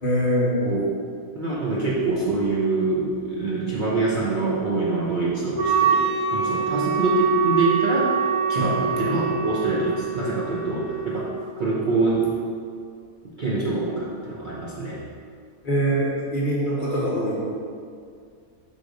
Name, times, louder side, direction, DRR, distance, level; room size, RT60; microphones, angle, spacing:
voice 1, 0.0-0.7 8.5-8.7 15.6-17.4, equal, 40° left, -6 dB, 1.0 m, -23 dB
voice 2, 1.3-8.1 8.5-11.3 11.6-12.3 13.4-15.0, right 3 dB, 45° right, -7 dB, 0.6 m, -25 dB
Wind instrument woodwind instrument, 5.5-11.4, right 6 dB, 60° right, 1.2 m, -24 dB
5.0 x 3.8 x 5.0 m, 2.3 s
omnidirectional pair, 1.6 m